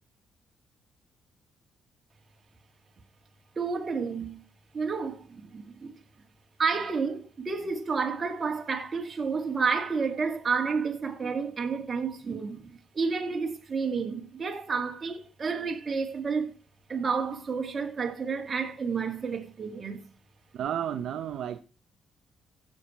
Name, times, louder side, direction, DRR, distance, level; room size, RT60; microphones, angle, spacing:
voice 1, 3.6-4.4 4.7-6.0 6.6-16.5 16.9-20.0, right 5 dB, 35° right, 2.7 m, -30 dB
voice 2, 20.5-21.6, right 10 dB, 70° right, 0.7 m, -32 dB
15.5 x 7.5 x 4.7 m
cardioid pair, 90°, 0 cm